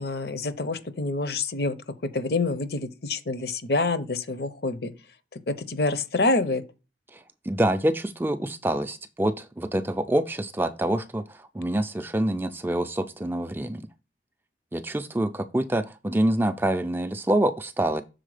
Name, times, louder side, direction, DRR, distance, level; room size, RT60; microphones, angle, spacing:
voice 1, 0.0-1.7 2.1-4.9 5.5-6.6, left 3 dB, 60° left, 0.7 m, -27 dB
voice 2, 7.1-13.9 14.7-18.0, right 1 dB, 10° right, 0.3 m, -26 dB
6.4 x 4.3 x 4.9 m
head